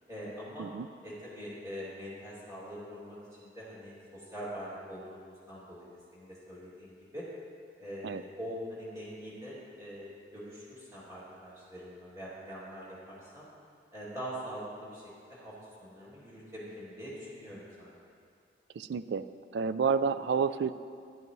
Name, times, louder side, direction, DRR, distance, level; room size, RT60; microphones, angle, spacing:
voice 1, 0.1-0.7 1.0-7.3 7.8-13.5 13.9-15.0 15.3-15.5 15.8-18.0, equal, 20° right, -8 dB, 2.5 m, -43 dB
voice 2, 18.7-19.3 19.5-20.7, right 6 dB, 75° right, 13 dB, 0.3 m, -29 dB
11.0 x 10.5 x 3.1 m, 2.3 s
head